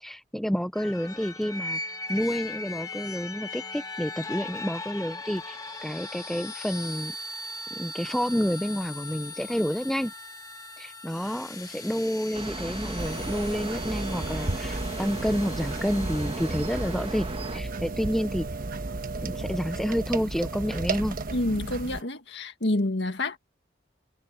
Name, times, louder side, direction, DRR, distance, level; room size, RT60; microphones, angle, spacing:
voice 1, 0.0-1.8 2.1-7.1 7.7-10.1 10.8-18.5 19.2-21.2, equal, ahead, 0.5 m, -29 dB
sound 1, 0.7-17.5, left 2 dB, 20° left, 1.7 m, -39 dB
sound 2, 12.3-17.6, right 2 dB, 30° right, 1.2 m, -36 dB
sound 3, 13.0-22.0, right 3 dB, 50° right, 1.2 m, -34 dB
voice 2, 21.3-23.4, left 1 dB, 70° left, 1.9 m, -28 dB
head